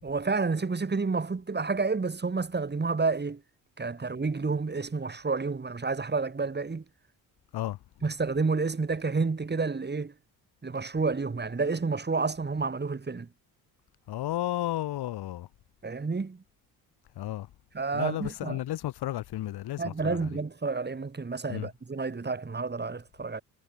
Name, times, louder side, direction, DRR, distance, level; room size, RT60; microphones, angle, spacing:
voice 1, 0.0-3.4 3.8-6.8 8.0-10.1 10.6-13.3 15.8-16.4 17.7-18.6 19.8-23.4, right 4 dB, 25° right, 4.8 m, -30 dB
voice 2, 14.1-15.5 17.2-17.5 17.9-20.2 21.5-21.7, left 14 dB, 75° left, 2.1 m, -33 dB
cardioid pair, 90°, 39 cm